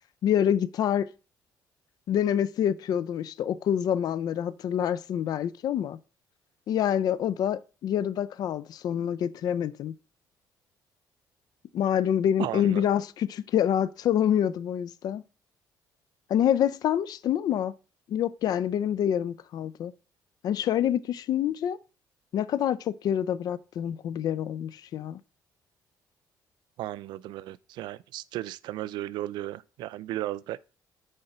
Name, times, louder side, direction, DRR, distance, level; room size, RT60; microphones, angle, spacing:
voice 1, 0.2-1.1 2.1-6.0 6.7-9.9 11.7-15.2 16.3-17.7 18.1-19.9 20.4-21.8 22.3-25.2, left 10 dB, 60° left, 0.5 m, -26 dB
voice 2, 12.4-12.9 26.8-30.6, right 14 dB, 85° right, 0.4 m, -35 dB
6.6 x 4.9 x 4.4 m
cardioid pair, 115°, 7 cm